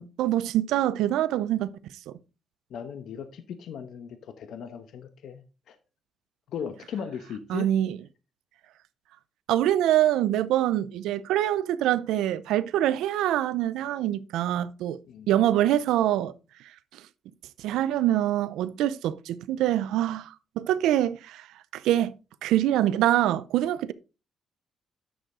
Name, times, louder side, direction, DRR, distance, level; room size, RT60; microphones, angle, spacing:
voice 1, 0.0-1.7 2.1-2.2 7.5-8.0 9.5-15.0 15.3-16.3 16.9-17.0 17.6-21.5 21.7-22.1 22.4-23.9, right 12 dB, 90° right, 0.5 m, -25 dB
voice 2, 2.7-5.8 6.5-7.7 15.1-15.3, left 7 dB, 70° left, 1.1 m, -38 dB
10.5 x 6.4 x 3.7 m
cardioid pair, 90°, 0 cm